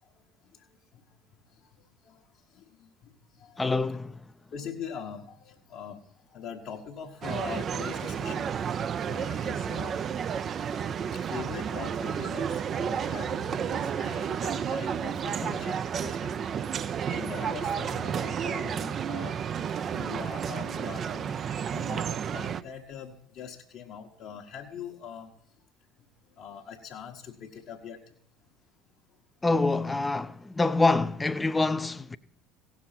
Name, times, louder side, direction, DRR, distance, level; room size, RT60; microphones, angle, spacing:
voice 1, 2.5-3.1 3.4-3.7 4.5-6.0 6.3-8.5 9.1-10.0 11.1-15.8 16.0-16.3 16.8-19.4 19.7-21.4 21.7-25.3 26.4-28.0, left 7 dB, 55° left, 1.1 m, -42 dB
voice 2, 3.6-4.2 8.3-8.4 15.4-15.6 29.4-32.2, left 3 dB, 15° left, 0.5 m, -26 dB
sound 1, 7.2-22.6, right 7 dB, 40° right, 0.5 m, -31 dB
16.5 x 6.1 x 5.8 m
hypercardioid pair, 65°, 0 cm